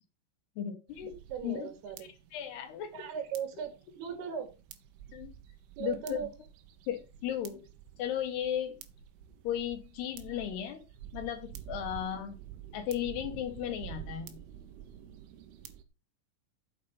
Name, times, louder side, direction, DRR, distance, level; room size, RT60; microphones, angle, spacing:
voice 1, 0.6-1.2 1.4-1.7 2.3-2.9 5.1-5.3 5.8-6.2 6.9-7.7 8.0-8.8 9.4-10.8 11.1-12.4 12.7-14.4, left 10 dB, 65° left, 2.8 m, -35 dB
sound 1, 0.9-15.8, right 10 dB, 75° right, 3.8 m, -49 dB
voice 2, 1.3-2.1 2.9-4.6 5.8-6.3, right 7 dB, 55° right, 4.2 m, -38 dB
9.4 x 8.2 x 5.5 m
omnidirectional pair, 5.9 m